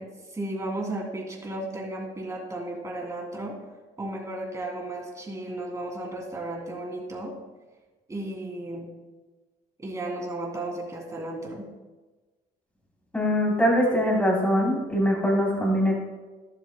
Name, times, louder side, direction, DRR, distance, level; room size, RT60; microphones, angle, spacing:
voice 1, 0.0-3.5 4.0-7.3 8.1-8.9 9.8-11.7, right 1 dB, 20° right, -1 dB, 2.8 m, -34 dB
voice 2, 13.1-16.0, equal, 10° left, -2 dB, 3.5 m, -22 dB
12.0 x 12.0 x 2.2 m, 1.2 s
cardioid pair, 110°, 17 cm